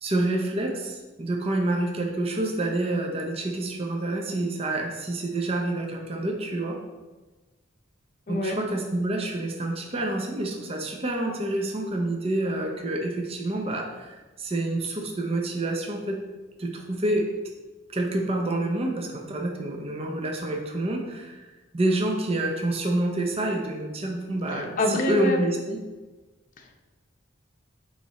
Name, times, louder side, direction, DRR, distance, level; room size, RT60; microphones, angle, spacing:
voice 1, 0.0-6.8 8.3-16.2 16.6-17.3 17.9-21.4 21.7-25.8, right 1 dB, 30° right, 2 dB, 0.7 m, -28 dB
voice 2, 8.3-8.6 24.5-25.4 26.6-26.8, left 1 dB, 40° left, 2 dB, 0.7 m, -27 dB
8.2 x 3.2 x 4.1 m, 1.2 s
head